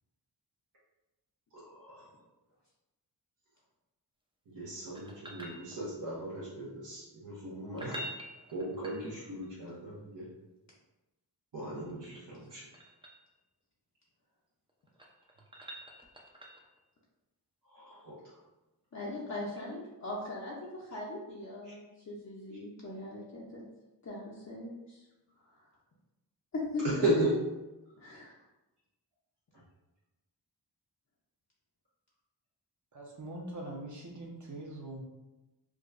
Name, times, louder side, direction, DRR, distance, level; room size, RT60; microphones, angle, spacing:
voice 1, 1.6-2.0 4.5-8.0 8.5-10.3 11.5-12.6 17.7-18.1 26.8-27.3, right 1 dB, 80° right, -8 dB, 1.0 m, -35 dB
sound 1, 4.9-6.2 7.6-9.5 11.6-13.3 14.7-16.8 19.5-19.6, right 1 dB, 15° right, 0.5 m, -47 dB
voice 2, 18.9-23.6 24.0-25.0 26.5-26.8 28.0-28.3, left 2 dB, 45° left, -5 dB, 0.6 m, -40 dB
voice 3, 32.9-35.0, right 1 dB, 45° right, -2 dB, 0.9 m, -43 dB
4.8 x 2.2 x 2.5 m, 1.0 s
wide cardioid pair, 95°, 42 cm